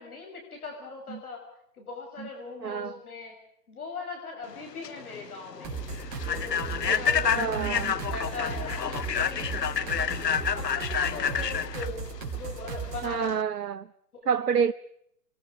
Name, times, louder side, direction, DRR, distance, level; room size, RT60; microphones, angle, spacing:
voice 1, 0.0-1.4 1.8-3.3 3.7-5.8 6.2-7.6 8.1-10.1 10.5-12.0 12.3-13.2, left 4 dB, 65° left, 6.9 m, -39 dB
voice 2, 2.6-3.0 6.9-7.9 13.0-13.9 14.3-14.7, right 7 dB, 80° right, 0.9 m, -28 dB
Human voice / Train, 4.5-13.4, left 7 dB, 85° left, 0.9 m, -29 dB
sound 1, 5.6-13.2, right 5 dB, 30° right, 4.0 m, -36 dB
29.0 x 23.0 x 5.1 m
figure-of-eight pair, 135°, 47 cm